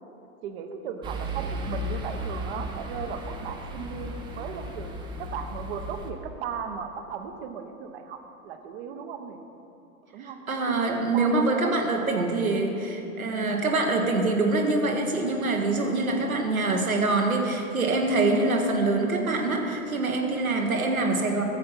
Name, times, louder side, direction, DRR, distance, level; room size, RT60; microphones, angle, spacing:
voice 1, 0.4-9.4 10.1-10.4 10.7-12.4 13.3-13.6 15.8-16.3, right 7 dB, 45° right, 7 dB, 0.9 m, -37 dB
sound 1, 1.0-6.1, equal, 10° right, 0.5 m, -35 dB
voice 2, 10.2-21.4, right 2 dB, 75° right, 2 dB, 1.5 m, -25 dB
13.5 x 7.6 x 4.3 m, 2.8 s
figure-of-eight pair, 100°, 43 cm